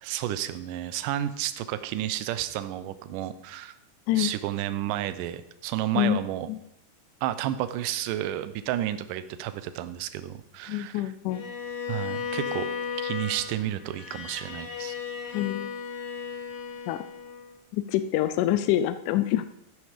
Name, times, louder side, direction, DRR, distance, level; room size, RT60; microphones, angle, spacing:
voice 1, 0.0-3.7 4.2-6.5 7.2-11.1 11.9-12.7 13.0-15.0, right 12 dB, 75° right, 13 dB, 2.2 m, -31 dB
voice 2, 10.7-11.4 15.3-15.7 16.9-17.0 17.7-19.4, left 13 dB, 80° left, 11 dB, 1.9 m, -26 dB
Bowed string instrument, 11.3-17.5, left 7 dB, 50° left, 2.2 m, -35 dB
13.0 x 9.5 x 5.1 m, 0.80 s
omnidirectional pair, 4.0 m